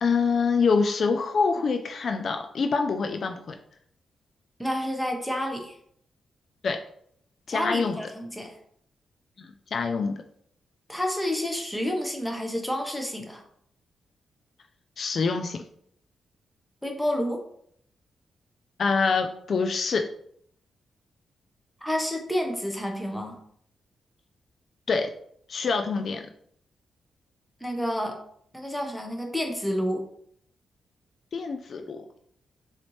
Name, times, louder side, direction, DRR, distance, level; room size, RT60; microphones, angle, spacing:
voice 1, 0.0-3.6 6.6-6.8 7.5-8.0 9.4-10.2 15.0-15.6 18.8-20.1 24.9-25.1 25.5-26.3 31.3-32.2, left 4 dB, 60° left, 6 dB, 0.3 m, -25 dB
voice 2, 4.6-5.8 7.5-8.6 10.9-13.4 16.8-17.4 21.8-23.4 27.6-28.2 28.5-30.0, equal, 5° left, 2 dB, 1.0 m, -29 dB
4.1 x 2.8 x 3.1 m, 0.66 s
cardioid pair, 60°, 0 cm